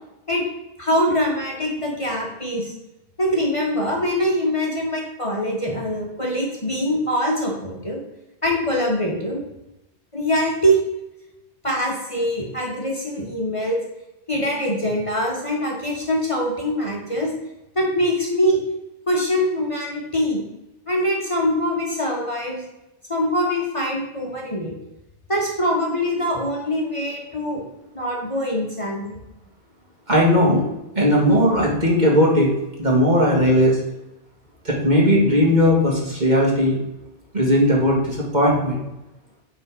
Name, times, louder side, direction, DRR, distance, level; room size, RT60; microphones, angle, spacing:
voice 1, 0.8-2.7 3.2-8.0 8.4-9.4 10.1-10.8 11.6-13.8 14.3-17.3 17.7-18.6 19.1-20.4 20.9-22.6 23.1-24.7 25.3-27.6 27.9-29.2, equal, 30° left, -2 dB, 1.5 m, -23 dB
voice 2, 30.1-30.6 31.0-32.5 32.8-33.8 34.6-36.8 37.3-38.8, equal, 40° right, -3 dB, 2.2 m, -17 dB
8.8 x 4.1 x 6.2 m, 0.91 s
omnidirectional pair, 1.2 m